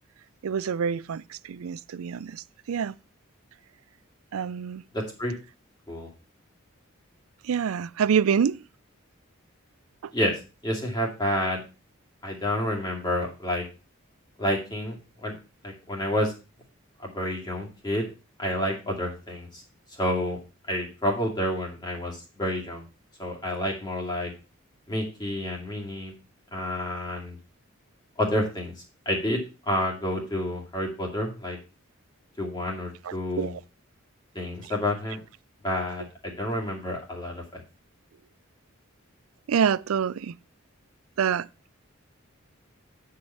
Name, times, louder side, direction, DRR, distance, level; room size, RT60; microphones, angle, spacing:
voice 1, 0.4-3.0 4.3-4.8 7.4-8.6 10.0-10.1 33.0-33.6 39.5-40.4 41.2-41.5, right 7 dB, 90° right, 0.4 m, -26 dB
voice 2, 4.9-5.3 5.9-6.1 10.1-11.6 12.2-13.6 14.4-15.3 15.6-16.3 17.0-18.1 18.4-19.6 19.9-20.4 20.7-22.8 23.2-24.3 24.9-26.1 26.5-27.4 28.2-28.7 29.1-31.6 32.4-33.5 34.3-35.2 35.6-37.6, left 1 dB, 20° left, 2.3 m, -29 dB
9.8 x 4.9 x 5.6 m
head